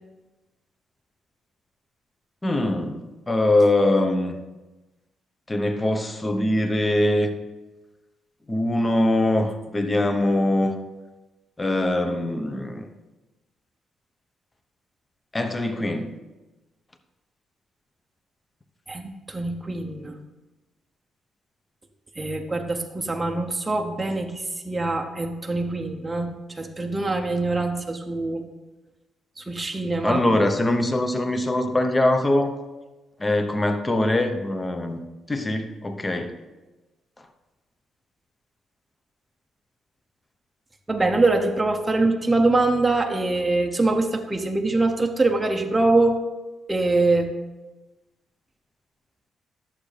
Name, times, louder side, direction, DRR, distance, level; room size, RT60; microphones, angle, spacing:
voice 1, 2.4-4.4 5.5-7.3 8.5-10.8 11.6-12.9 15.3-16.2 30.0-32.5 33.2-35.0 35.3-36.3, left 1 dB, 15° left, 0.8 m, -22 dB
voice 2, 18.9-20.2 22.2-28.4 29.4-30.3 40.9-46.2 46.7-47.4, right 2 dB, 15° right, 0.7 m, -23 dB
11.5 x 7.3 x 3.3 m
cardioid pair, 115°, 0 cm